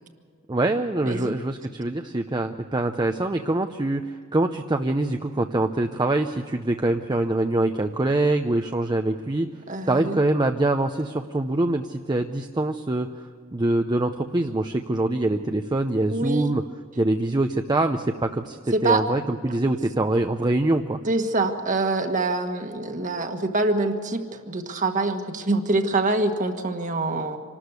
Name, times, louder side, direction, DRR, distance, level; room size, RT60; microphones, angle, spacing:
voice 1, 0.5-9.5 9.9-16.6 17.0-21.0, right 2 dB, 20° right, 5 dB, 0.6 m, -24 dB
voice 2, 9.7-10.2 16.1-16.5 18.7-19.0 21.0-27.4, right 2 dB, 40° right, 6 dB, 1.5 m, -25 dB
25.5 x 13.0 x 8.2 m, 2.1 s
head